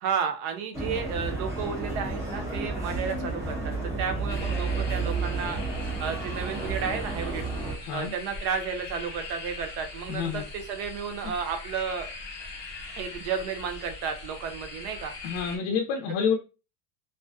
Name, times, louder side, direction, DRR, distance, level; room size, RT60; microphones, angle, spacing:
voice 1, 0.0-5.6 6.0-7.5 7.9-12.1 13.0-15.1, right 6 dB, 70° right, 0.8 m, -32 dB
sound 1, 0.7-7.7, right 3 dB, 5° right, 0.4 m, -31 dB
sound 2, 4.3-15.6, left 3 dB, 20° left, 0.7 m, -41 dB
voice 2, 7.8-8.1 10.1-10.4 15.2-16.3, left 6 dB, 55° left, 0.5 m, -28 dB
2.5 x 2.1 x 2.4 m
cardioid pair, 155°, 49 cm